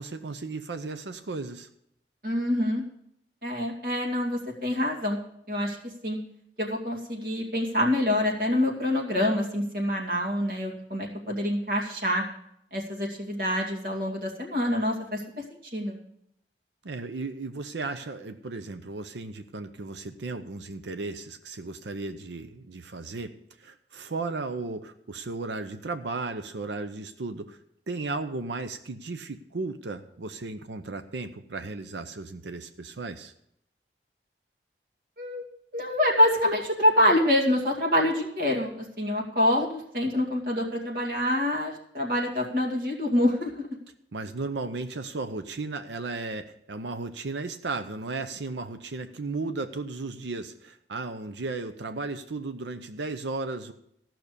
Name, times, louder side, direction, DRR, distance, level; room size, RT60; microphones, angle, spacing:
voice 1, 0.0-1.7 16.8-23.3 23.6-27.6 27.9-33.3 44.1-53.7, right 3 dB, 85° right, 9 dB, 0.7 m, -35 dB
voice 2, 2.2-2.8 3.4-5.2 5.5-6.2 6.6-12.2 12.7-15.4 15.7-16.0 35.2-35.4 35.7-43.7, left 1 dB, 55° right, -1 dB, 2.3 m, -26 dB
14.5 x 6.0 x 6.7 m, 0.73 s
head